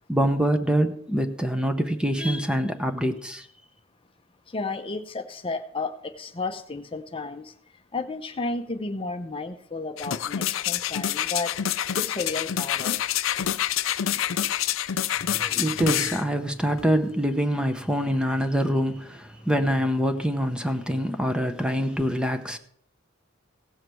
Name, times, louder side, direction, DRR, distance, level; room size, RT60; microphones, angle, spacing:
voice 1, 0.1-3.4 15.3-22.6, equal, 5° right, 0.8 m, -25 dB
voice 2, 4.5-7.5 7.9-11.5 12.0-13.0, left 3 dB, 25° left, 0.7 m, -32 dB
sound 1, 10.0-16.2 16.8-16.9, left 10 dB, 75° left, 0.5 m, -27 dB
16.5 x 7.3 x 4.6 m
head